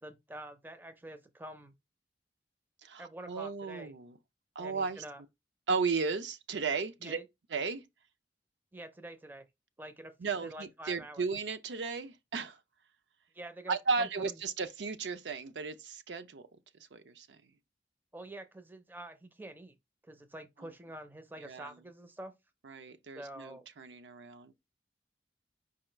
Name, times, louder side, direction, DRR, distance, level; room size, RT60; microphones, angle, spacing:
voice 1, 0.0-1.7 3.0-3.9 4.6-5.2 7.0-7.3 8.7-9.5 9.8-10.1 10.4-11.3 13.3-14.4 18.1-19.8 20.0-22.3 23.1-23.6, right 1 dB, 10° right, 0.5 m, -47 dB
voice 2, 2.8-4.1 4.6-5.0 5.7-7.2 7.5-7.8 10.2-12.6 13.7-16.5 16.9-17.4 21.4-21.7 22.6-24.5, right 4 dB, 80° right, 0.5 m, -35 dB
4.8 x 2.3 x 4.4 m
head